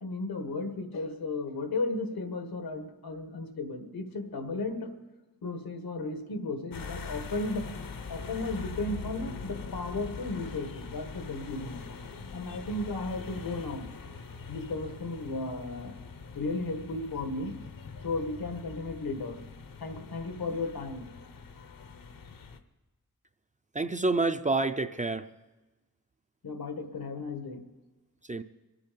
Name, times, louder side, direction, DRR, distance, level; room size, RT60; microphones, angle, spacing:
voice 1, 0.0-4.9 5.4-7.7 8.1-11.8 12.3-13.9 14.5-16.0 16.3-17.6 18.0-19.4 19.8-21.1 26.4-27.6, left 2 dB, 90° left, 6 dB, 1.7 m, -34 dB
sound 1, 6.7-22.6, left 5 dB, 65° left, 0.9 m, -43 dB
voice 2, 23.7-25.3 28.2-28.4, right 3 dB, 20° right, 9 dB, 0.4 m, -28 dB
24.5 x 8.5 x 5.2 m, 1.2 s
wide cardioid pair, 155°, 36 cm